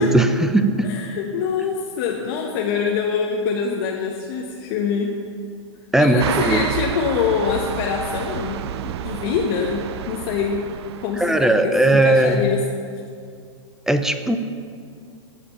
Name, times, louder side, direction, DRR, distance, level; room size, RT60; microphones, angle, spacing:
voice 1, 0.0-0.9 5.9-6.7 11.2-12.5 13.9-14.4, right 1 dB, 5° right, 9 dB, 0.5 m, -18 dB
voice 2, 0.8-5.1 6.0-10.6 11.0-12.6, left 6 dB, 45° left, 0 dB, 0.9 m, -24 dB
sound 1, 6.2-11.6, right 11 dB, 60° right, 0.4 m, -30 dB
14.5 x 5.1 x 5.6 m, 2.3 s
hypercardioid pair, 115°, 16 cm